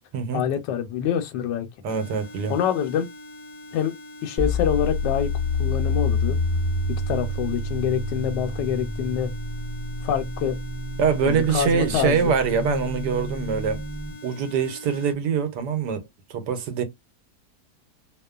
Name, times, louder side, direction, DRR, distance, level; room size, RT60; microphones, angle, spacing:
voice 1, 0.3-1.7 2.5-3.1 3.7-3.9 4.2-5.3 5.6-6.4 6.9-9.3 10.0-10.6 11.2-12.3, left 9 dB, 85° left, 1.2 m, -26 dB
voice 2, 1.8-2.5 11.0-13.8 14.2-16.0 16.3-16.8, right 6 dB, 80° right, 1.3 m, -24 dB
sound 1, 1.9-15.1, left 3 dB, 65° left, 0.8 m, -43 dB
sound 2, 4.4-14.1, left 2 dB, 20° left, 0.5 m, -28 dB
3.0 x 2.1 x 2.3 m
omnidirectional pair, 1.9 m